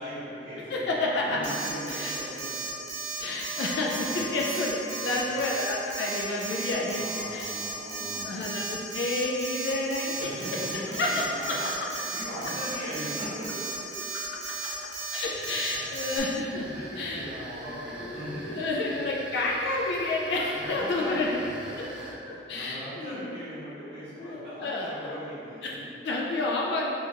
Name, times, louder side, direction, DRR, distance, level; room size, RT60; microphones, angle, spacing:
voice 1, 0.0-2.5 4.0-4.2 5.1-5.3 6.8-8.3 10.1-11.6 11.9-14.2 16.6-19.4 20.5-25.9, equal, 30° right, -17 dB, 1.5 m, -39 dB
voice 2, 0.7-1.4 1.9-2.1 3.2-7.1 7.3-7.5 8.0-10.4 11.0-11.7 14.1-14.2 14.6-14.7 15.1-16.6 17.0-17.2 18.0-21.4 21.8-21.9 22.5-23.3 24.2-25.2 25.6-25.8 26.0-26.9, left 2 dB, 65° left, -2 dB, 0.3 m, -30 dB
Alarm, 1.4-16.2, right 4 dB, 50° right, 0.6 m, -35 dB
Wind instrument woodwind instrument, 3.2-7.4, right 1 dB, 30° left, 0.9 m, -46 dB
sound 1, 15.3-22.1, right 1 dB, 5° right, 0.5 m, -44 dB
4.2 x 2.4 x 2.8 m, 2.8 s
head